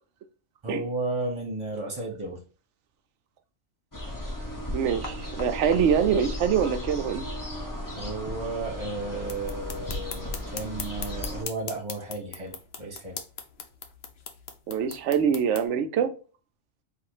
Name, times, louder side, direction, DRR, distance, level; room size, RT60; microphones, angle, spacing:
voice 1, 0.6-2.4 7.9-13.2, right 2 dB, 25° right, 0 dB, 1.3 m, -33 dB
sound 1, 3.9-11.4, left 1 dB, 20° left, 0.7 m, -35 dB
voice 2, 4.7-7.2 14.7-16.1, right 7 dB, 80° right, 8 dB, 0.9 m, -24 dB
sound 2, 9.2-15.7, left 6 dB, 60° left, 0.9 m, -41 dB
4.0 x 2.6 x 4.7 m, 0.37 s
omnidirectional pair, 1.2 m